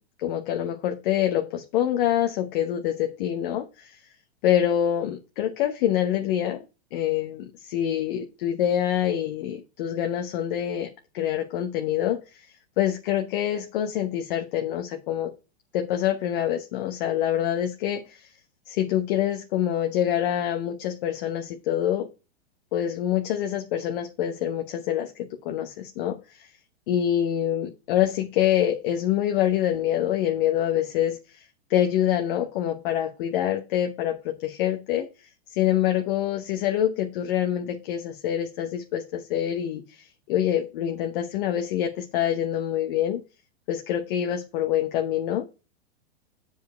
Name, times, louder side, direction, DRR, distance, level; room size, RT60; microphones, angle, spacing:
voice 1, 0.2-4.0 4.4-6.6 6.9-12.4 12.8-15.3 15.7-18.3 18.7-22.1 22.7-26.4 26.9-35.1 35.5-43.2 43.7-45.4, left 11 dB, 50° left, 1.0 m, -26 dB
7.6 x 4.9 x 4.6 m
hypercardioid pair, 110°, 33 cm